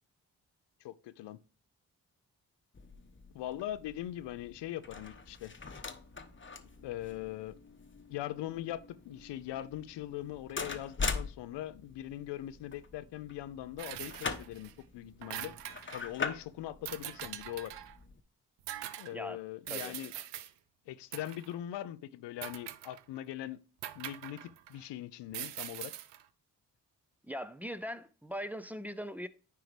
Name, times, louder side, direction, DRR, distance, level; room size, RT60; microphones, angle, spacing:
voice 1, 0.8-1.4 3.3-5.5 6.8-7.6 8.1-15.5 15.9-17.7 19.0-20.1 20.9-23.6 23.9-25.9, left 13 dB, 80° left, 0.5 m, -41 dB
sound 1, 2.7-18.2, left 4 dB, 30° left, 1.0 m, -43 dB
sound 2, 13.8-14.7 15.0-16.1 16.9-18.0 18.7-19.1 19.7-20.5 21.1-21.5 22.4-23.2 23.8-24.8 25.3-26.2, right 12 dB, 80° right, 0.6 m, -43 dB
voice 2, 19.1-19.4 19.7-20.2 27.2-29.3, equal, 5° right, 0.6 m, -41 dB
9.3 x 4.6 x 3.3 m
supercardioid pair, 40°, 41 cm